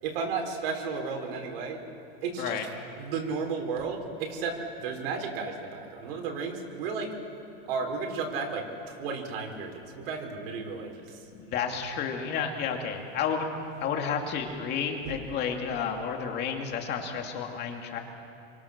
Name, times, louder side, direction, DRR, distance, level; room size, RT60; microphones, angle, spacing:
voice 1, 0.0-1.8 2.2-2.6 3.0-7.1 7.7-11.3, right 5 dB, 70° right, 3 dB, 4.7 m, -33 dB
voice 2, 11.3-13.5 13.8-18.0, left 6 dB, 35° left, 2 dB, 2.5 m, -31 dB
27.5 x 24.0 x 6.7 m, 2.8 s
supercardioid pair, 155°, 29 cm